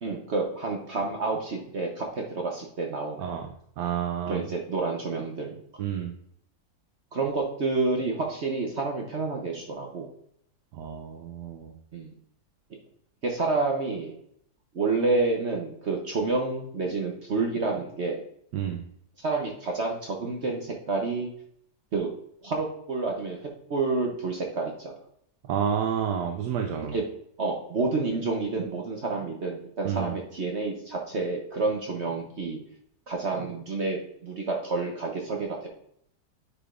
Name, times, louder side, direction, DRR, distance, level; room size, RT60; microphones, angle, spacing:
voice 1, 0.0-3.3 4.3-5.5 7.1-10.1 11.9-12.1 13.2-14.2 14.7-18.2 19.2-21.3 21.9-22.1 22.4-24.9 26.9-27.0 27.4-32.6 33.1-35.7, right 3 dB, 50° right, 1 dB, 1.0 m, -29 dB
voice 2, 3.8-4.4 5.8-6.1 10.7-11.7 18.5-18.8 25.5-26.9 29.8-30.1, right 8 dB, 85° right, 3 dB, 1.3 m, -29 dB
9.7 x 5.0 x 2.5 m, 0.69 s
omnidirectional pair, 1.8 m